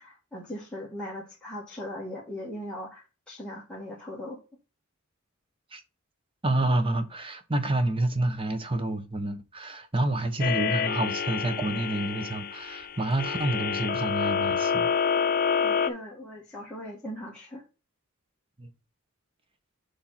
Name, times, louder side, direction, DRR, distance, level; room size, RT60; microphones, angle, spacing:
voice 1, 0.0-4.4 15.5-17.6, left 1 dB, 5° left, 2.0 m, -39 dB
voice 2, 6.4-14.9 18.6-18.7, right 2 dB, 25° right, 1.1 m, -28 dB
sound 1, 10.4-15.9, left 6 dB, 45° left, 0.7 m, -28 dB
7.2 x 3.7 x 5.7 m
head